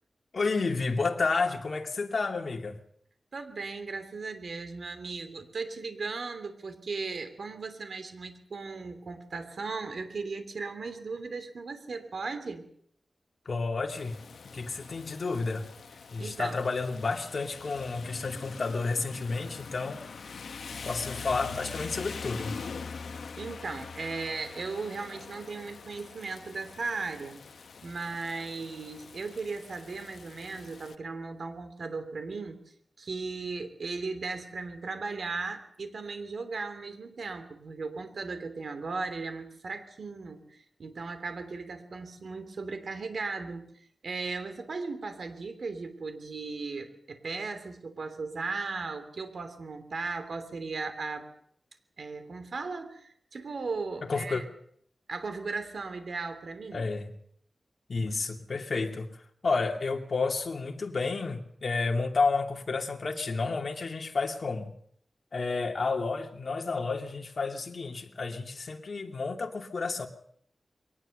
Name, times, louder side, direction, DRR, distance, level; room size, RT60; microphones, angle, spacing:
voice 1, 0.3-2.8 13.5-14.2 14.5-15.7 16.1-20.0 20.8-22.5 54.0-54.4 56.7-57.1 57.9-59.1 59.4-64.7 65.3-70.1, left 4 dB, 55° left, 3 dB, 2.7 m, -31 dB
voice 2, 3.3-12.7 16.2-16.6 23.4-27.4 27.8-32.6 33.0-51.3 52.0-54.4 55.1-56.9, right 4 dB, 70° right, 9 dB, 3.1 m, -37 dB
Rain, 13.9-30.9, left 5 dB, 85° left, 1.0 m, -44 dB
23.0 x 19.0 x 6.7 m, 0.65 s
wide cardioid pair, 95°, 0 cm